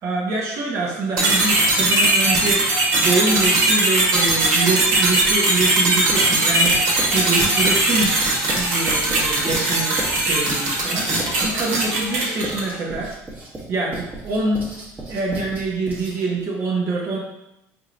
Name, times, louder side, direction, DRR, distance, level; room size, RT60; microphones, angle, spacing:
voice 1, 0.0-6.8 7.1-8.1 8.5-13.1 13.7-14.8 15.1-17.2, right 3 dB, 50° right, -2 dB, 0.9 m, -25 dB
sound 1, 1.2-12.8, right 2 dB, 70° right, 1.5 m, -19 dB
Writing, 4.8-5.4 6.1-16.4, right 1 dB, 25° right, 1.1 m, -36 dB
4.5 x 3.1 x 2.5 m, 0.89 s
supercardioid pair, 105°, 7 cm